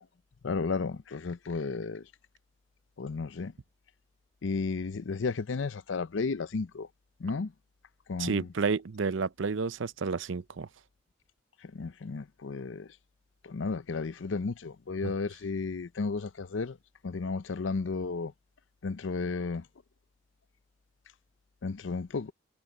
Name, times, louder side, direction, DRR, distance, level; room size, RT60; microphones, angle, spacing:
voice 1, 0.4-2.0 3.0-3.5 4.4-6.9 7.2-7.5 8.1-8.5 11.7-12.9 13.4-16.8 17.0-18.3 18.8-19.6 21.6-22.3, left 4 dB, 85° left, 0.6 m, -33 dB
voice 2, 8.2-10.7 15.0-15.1, right 4 dB, 90° right, 0.6 m, -30 dB
head